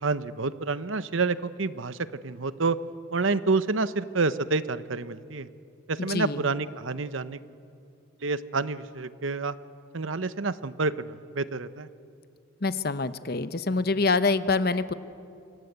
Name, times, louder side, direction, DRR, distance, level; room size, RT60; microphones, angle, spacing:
voice 1, 0.0-2.8 3.1-5.5 5.9-7.4 8.2-9.5 9.9-11.9, right 3 dB, 75° right, 13 dB, 0.9 m, -28 dB
voice 2, 6.0-6.4 12.6-14.9, left 3 dB, 50° left, 12 dB, 0.9 m, -26 dB
26.5 x 26.5 x 8.1 m, 2.5 s
head